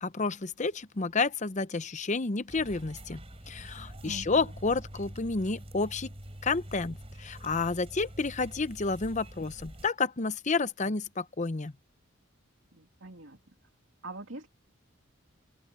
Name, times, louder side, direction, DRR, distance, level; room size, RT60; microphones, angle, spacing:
voice 1, 0.0-3.2 3.5-6.1 6.4-11.7, left 4 dB, 35° left, 0.7 m, -30 dB
sound 1, 2.5-9.9, equal, 30° right, 3.9 m, -46 dB
voice 2, 4.1-4.5 12.7-13.5 14.0-14.5, right 2 dB, 65° right, 2.8 m, -44 dB
open air
head